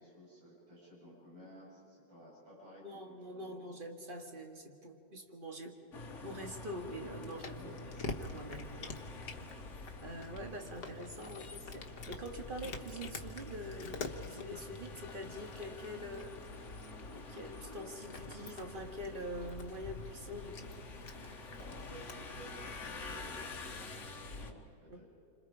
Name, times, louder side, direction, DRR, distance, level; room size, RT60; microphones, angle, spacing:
voice 1, 0.0-3.7 7.6-8.2 21.5-25.1, equal, 80° right, -6 dB, 8.8 m, -55 dB
voice 2, 2.8-5.8 6.2-7.7 8.2-9.0 10.0-16.4 17.1-20.8 24.9-25.0, equal, 30° right, 3 dB, 2.1 m, -45 dB
sound 1, 5.9-24.5, left 3 dB, 40° left, 1.7 m, -48 dB
Cat, 6.8-23.9, left 3 dB, 60° left, 1.9 m, -48 dB
29.0 x 26.0 x 4.9 m, 2.8 s
omnidirectional pair, 2.0 m